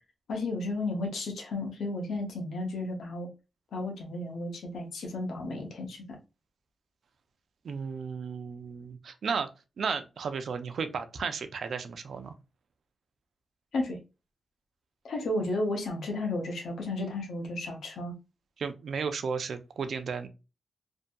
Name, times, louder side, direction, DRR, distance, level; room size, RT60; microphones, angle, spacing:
voice 1, 0.3-3.3 3.7-6.2 13.7-14.0 15.0-18.1, left 2 dB, 85° left, 0.7 m, -33 dB
voice 2, 7.6-9.5 9.8-12.3 18.6-20.3, right 5 dB, 70° right, 0.4 m, -34 dB
2.7 x 2.6 x 2.2 m
cardioid pair, 85°, 0 cm